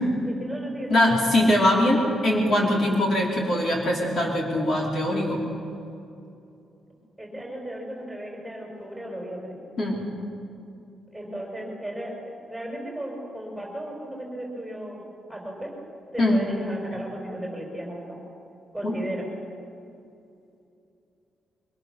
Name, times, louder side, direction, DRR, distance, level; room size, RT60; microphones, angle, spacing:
voice 1, 0.2-1.0 7.2-9.6 11.1-15.0 15.3-15.7 16.1-18.2 18.7-19.3, right 1 dB, ahead, -1 dB, 5.1 m, -35 dB
voice 2, 0.9-5.4 9.8-10.0 16.2-16.4 18.8-18.9, left 1 dB, 45° left, -2 dB, 3.8 m, -22 dB
24.5 x 23.5 x 7.0 m, 2.6 s
wide cardioid pair, 180°, 0 cm